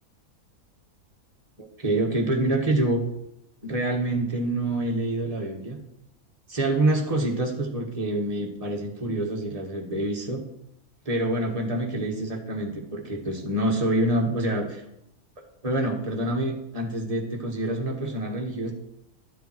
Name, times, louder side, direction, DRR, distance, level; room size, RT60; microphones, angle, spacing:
voice 1, 1.6-3.0 3.6-5.8 6.5-10.4 11.0-14.8 15.4-18.7, right 1 dB, 25° right, 1 dB, 1.6 m, -26 dB
11.5 x 7.0 x 4.5 m, 0.80 s
omnidirectional pair, 1.5 m